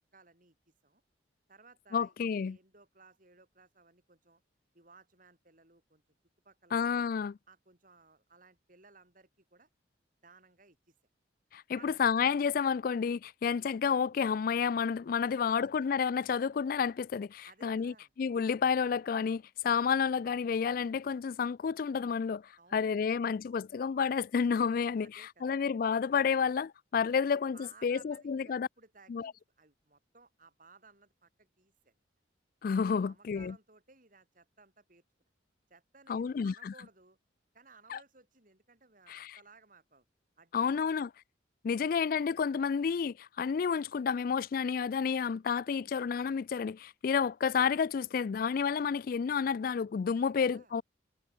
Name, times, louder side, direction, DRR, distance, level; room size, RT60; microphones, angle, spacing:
voice 1, 0.1-1.0 1.5-4.4 4.7-6.0 6.4-6.9 7.5-9.7 10.2-10.9 11.7-12.0 15.3-15.7 17.5-18.1 22.6-23.3 25.0-25.6 27.2-31.9 32.9-35.0 35.7-37.2 37.5-40.0 40.4-40.9 41.7-42.0 50.1-50.7, right 4 dB, 45° right, 5.6 m, -60 dB
voice 2, 1.9-2.6 6.7-7.4 11.5-22.4 22.7-28.7 29.1-29.3 32.6-33.5 36.1-36.7 37.9-38.0 39.1-39.4 40.5-41.1 41.6-50.8, left 6 dB, 50° left, 0.3 m, -30 dB
head